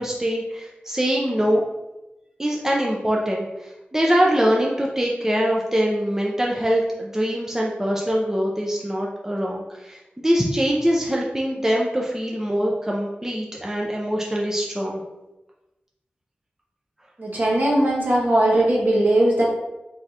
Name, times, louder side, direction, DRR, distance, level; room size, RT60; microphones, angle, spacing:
voice 1, 0.0-1.6 2.4-15.0, equal, 15° right, -2 dB, 0.6 m, -23 dB
voice 2, 17.2-19.4, right 1 dB, 55° right, -4 dB, 1.2 m, -19 dB
3.6 x 3.4 x 2.8 m, 0.99 s
wide cardioid pair, 50°, 4 cm